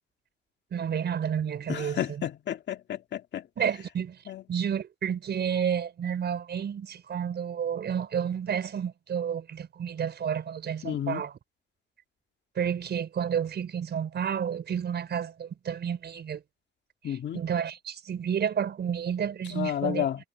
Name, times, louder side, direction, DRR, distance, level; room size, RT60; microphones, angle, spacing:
voice 1, 0.7-2.2 3.6-4.2 4.5-11.3 12.6-16.4 17.0-20.1, right 8 dB, 60° right, 5.0 m, -30 dB
voice 2, 1.7-3.4 4.3-4.4 10.8-11.2 17.0-17.4 19.5-20.2, left 10 dB, 60° left, 2.0 m, -31 dB
cardioid pair, 90°, 20 cm